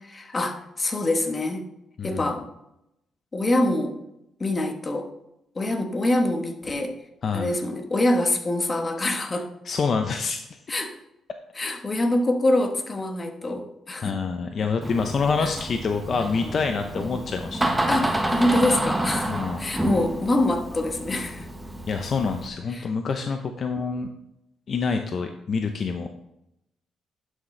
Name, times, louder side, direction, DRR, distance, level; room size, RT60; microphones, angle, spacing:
voice 1, 0.0-1.6 2.0-2.5 3.3-4.0 4.4-5.1 5.5-7.0 7.3-9.5 10.7-11.0 11.5-14.2 15.4-15.5 17.9-21.5 22.7-22.9, left 1 dB, 30° left, 6 dB, 1.2 m, -25 dB
voice 2, 2.0-2.3 7.2-7.5 9.6-10.6 14.0-17.7 19.3-19.6 21.9-24.1 24.7-26.1, left 5 dB, 50° left, 6 dB, 0.6 m, -27 dB
Door, 14.8-22.5, right 1 dB, 10° right, 1.1 m, -29 dB
11.0 x 6.4 x 3.3 m, 0.84 s
cardioid pair, 90°, 0 cm